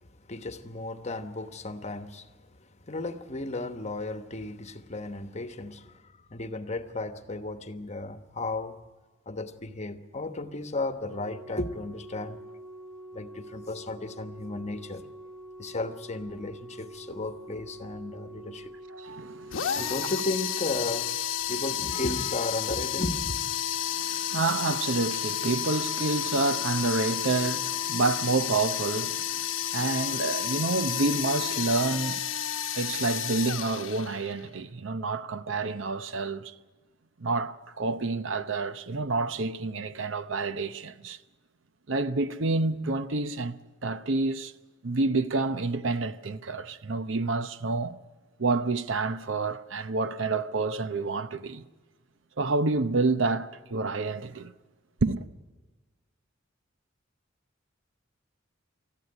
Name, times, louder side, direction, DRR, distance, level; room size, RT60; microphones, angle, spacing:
voice 1, 0.2-2.3 2.9-8.8 9.3-12.4 13.1-15.0 15.6-18.7 19.7-21.1 21.5-23.4, left 2 dB, 35° left, 1.1 m, -34 dB
Organ, 11.0-21.9 23.1-23.2, right 1 dB, 5° right, 1.0 m, -46 dB
voice 2, 18.9-19.8 23.9-29.2 29.7-32.2 32.7-36.5 37.2-41.2 41.9-43.6 43.8-44.5 44.8-48.0 48.4-51.6 52.4-54.5 55.0-55.2, right 3 dB, 70° right, 0.8 m, -28 dB
sound 1, 19.5-34.4, left 10 dB, 80° left, 1.0 m, -31 dB
20.0 x 14.0 x 9.8 m
head